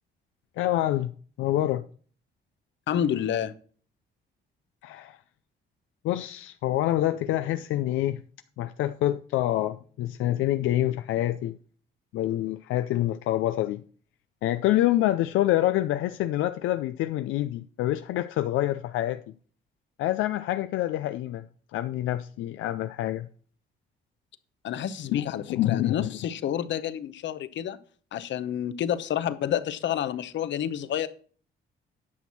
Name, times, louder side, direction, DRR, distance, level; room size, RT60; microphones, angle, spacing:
voice 1, 0.6-1.1 1.4-1.8 4.8-5.2 6.0-8.2 8.6-11.6 12.1-13.8 14.4-19.2 20.0-21.4 21.7-23.3 25.1-26.1, left 14 dB, 90° left, 0.5 m, -26 dB
voice 2, 2.9-3.5 24.6-27.8 28.1-31.1, left 10 dB, 65° left, 0.8 m, -29 dB
10.0 x 6.1 x 5.8 m
cardioid pair, 90°, 20 cm